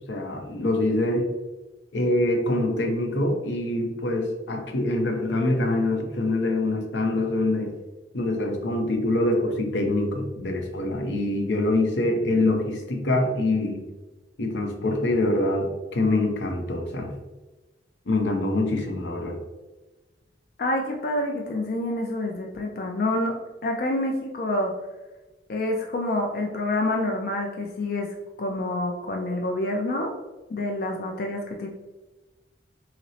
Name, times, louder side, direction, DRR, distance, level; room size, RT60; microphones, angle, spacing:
voice 1, 0.1-1.3 1.9-7.7 8.1-13.9 14.4-17.1 18.1-19.4, left 2 dB, 90° left, 3 dB, 0.7 m, -25 dB
voice 2, 20.6-23.4 23.6-24.7 25.5-30.1 30.5-31.7, left 1 dB, 55° left, 1 dB, 0.4 m, -27 dB
5.8 x 2.0 x 2.8 m, 1.1 s
head